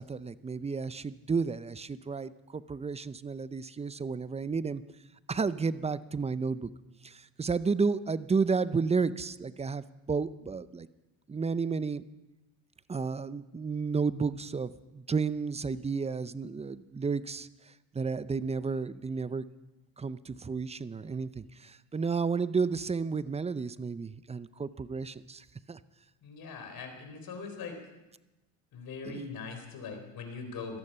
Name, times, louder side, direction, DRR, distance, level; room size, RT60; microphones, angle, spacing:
voice 1, 0.0-4.8 5.3-6.7 7.0-10.9 11.3-12.0 12.9-17.5 17.9-19.4 20.0-25.8 29.1-29.3, right 5 dB, 15° right, 16 dB, 0.5 m, -32 dB
voice 2, 26.2-27.8 28.7-30.8, left 4 dB, 55° left, 5 dB, 4.0 m, -41 dB
18.0 x 13.5 x 5.6 m, 1.0 s
supercardioid pair, 85°, 42 cm